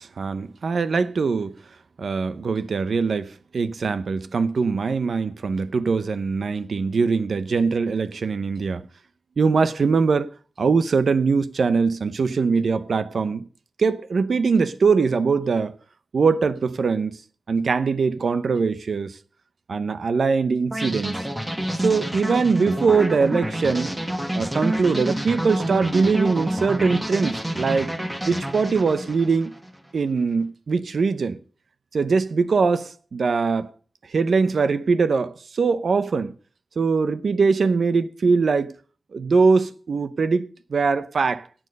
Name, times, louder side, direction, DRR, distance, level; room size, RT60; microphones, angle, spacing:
voice 1, 0.0-1.5 2.0-8.9 9.4-10.3 10.6-13.5 13.8-15.7 16.1-17.2 17.5-19.1 19.7-21.3 21.8-23.9 24.3-27.9 28.3-29.5 29.9-31.4 31.9-33.7 34.1-36.3 36.8-38.7 39.1-41.5, right 4 dB, 80° right, 0.7 m, -22 dB
sound 1, 20.7-29.8, right 1 dB, 10° right, 1.5 m, -28 dB
11.0 x 9.0 x 6.5 m
wide cardioid pair, 130°, 0 cm